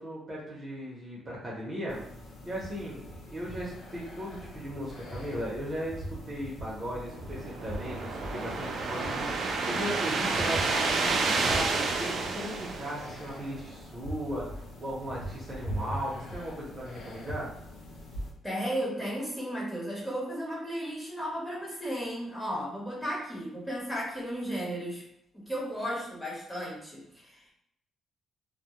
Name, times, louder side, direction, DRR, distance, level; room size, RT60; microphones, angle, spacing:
voice 1, 0.0-2.0 2.4-17.5, equal, 35° right, -4 dB, 0.7 m, -37 dB
sound 1, 1.9-18.3, equal, 80° left, 0.6 m, -42 dB
sound 2, 7.0-13.5, right 3 dB, 65° right, 0.4 m, -30 dB
voice 2, 18.4-25.0 25.3-27.5, equal, 10° left, -6 dB, 1.1 m, -34 dB
2.2 x 2.1 x 2.9 m, 0.76 s
cardioid pair, 100°, 0 cm